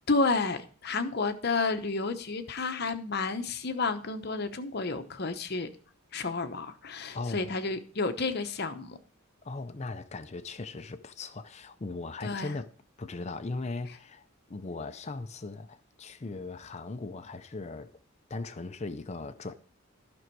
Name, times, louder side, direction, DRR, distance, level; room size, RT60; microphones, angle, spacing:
voice 1, 0.1-5.7 6.1-9.0 12.2-12.5, left 3 dB, 45° left, 0.9 m, -31 dB
voice 2, 7.1-7.5 9.4-12.7 13.0-14.2 14.5-17.9 18.3-19.5, left 3 dB, 30° left, 0.5 m, -38 dB
11.5 x 6.2 x 4.6 m
head